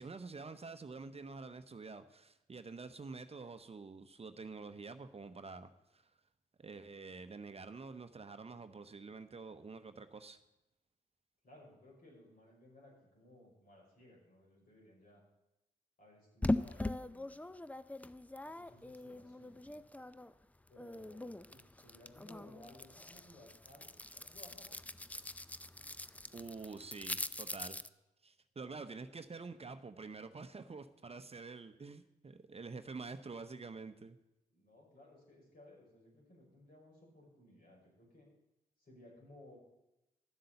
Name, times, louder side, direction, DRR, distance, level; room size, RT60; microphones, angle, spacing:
voice 1, 0.0-6.1 6.6-10.4 26.3-27.8 28.2-34.2, right 4 dB, 35° right, 10 dB, 0.9 m, -48 dB
voice 2, 11.4-15.2 16.0-17.4 18.4-19.8 20.7-24.8 34.5-38.3 38.8-39.6, left 1 dB, 60° left, -2 dB, 5.9 m, -60 dB
sound 1, 16.4-20.3 20.7-27.9, left 2 dB, 10° left, 0.5 m, -41 dB
12.0 x 7.6 x 7.0 m, 0.92 s
supercardioid pair, 40°, 17 cm